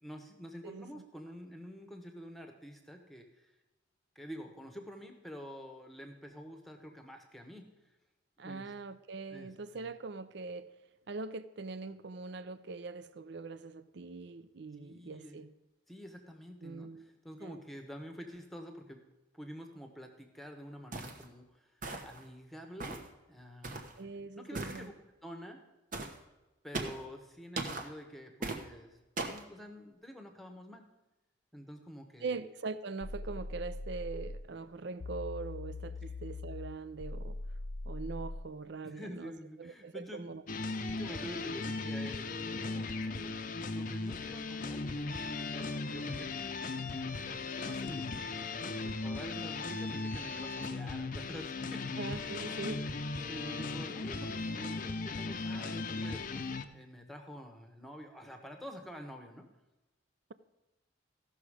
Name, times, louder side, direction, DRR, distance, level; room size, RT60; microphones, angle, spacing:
voice 1, 0.0-3.5 4.1-7.7 8.4-8.7 9.3-9.9 14.8-15.4 15.9-19.0 19.3-23.0 23.3-23.9 24.3-24.9 25.2-25.6 26.6-29.0 29.2-30.8 31.5-32.4 38.8-40.4 40.9-51.8 53.3-59.5, equal, ahead, 1.1 m, -48 dB
voice 2, 0.6-1.0 8.4-10.7 11.1-15.5 16.6-17.1 17.4-17.6 24.0-24.9 32.2-37.4 37.9-39.3 39.6-40.4 41.2-41.3 52.0-52.8, right 4 dB, 60° right, 0.5 m, -42 dB
sound 1, 20.9-21.2 21.8-22.2 22.8-23.1 23.6-23.9 24.5-24.8 25.9-26.2 26.7-27.0 27.6-27.9 28.4-28.6 29.2-29.4, right 3 dB, 40° right, 1.1 m, -38 dB
sound 2, 33.0-34.5 35.0-38.5, left 2 dB, 80° left, 0.6 m, -41 dB
sound 3, 40.5-56.6, left 3 dB, 40° left, 0.6 m, -37 dB
15.5 x 6.2 x 4.9 m
head